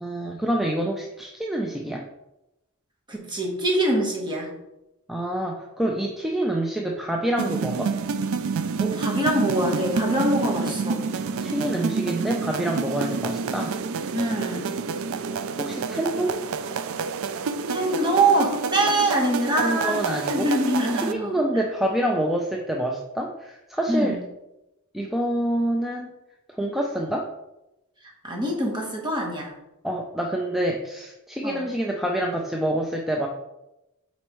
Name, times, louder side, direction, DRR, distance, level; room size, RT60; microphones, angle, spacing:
voice 1, 0.0-2.0 5.1-7.9 11.4-13.8 15.6-16.4 19.6-20.5 21.0-24.2 24.9-26.1 26.6-27.3 29.8-33.3, right 1 dB, ahead, 0 dB, 0.4 m, -27 dB
voice 2, 3.1-4.5 8.8-11.0 14.1-14.7 17.7-20.0 20.3-21.3 23.9-24.2 28.2-29.5 31.4-31.6, right 1 dB, 20° right, -1 dB, 1.3 m, -24 dB
sound 1, 7.4-21.1, right 5 dB, 65° right, 0.4 m, -28 dB
7.8 x 4.2 x 3.1 m, 0.94 s
head